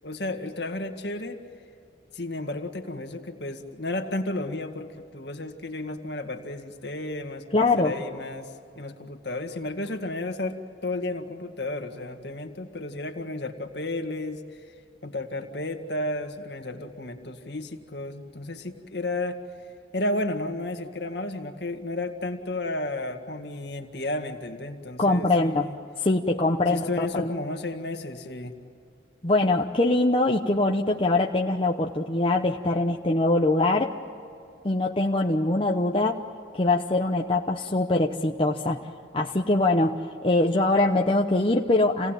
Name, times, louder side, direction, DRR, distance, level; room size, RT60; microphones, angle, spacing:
voice 1, 0.0-1.4 2.1-14.7 15.0-19.4 19.9-25.8 26.7-28.5, left 2 dB, 60° left, 5 dB, 1.9 m, -33 dB
voice 2, 7.5-7.9 25.0-25.7 26.0-27.3 29.2-33.9 34.6-36.2 36.5-38.8 39.1-42.1, left 2 dB, 30° left, 1 dB, 0.9 m, -23 dB
28.5 x 18.0 x 9.1 m, 2.5 s
head